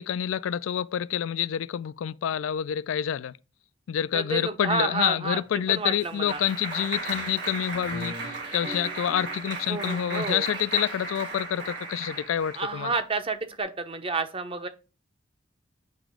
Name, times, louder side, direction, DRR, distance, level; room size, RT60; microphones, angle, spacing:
voice 1, 0.0-3.4 3.9-12.9, left 9 dB, 90° left, 0.3 m, -28 dB
voice 2, 4.1-5.4 5.7-6.4 9.7-10.5 12.6-14.7, right 3 dB, 30° right, 0.7 m, -30 dB
Clapping, 5.4-12.7, right 3 dB, 55° right, 1.9 m, -35 dB
8.6 x 3.0 x 5.0 m
head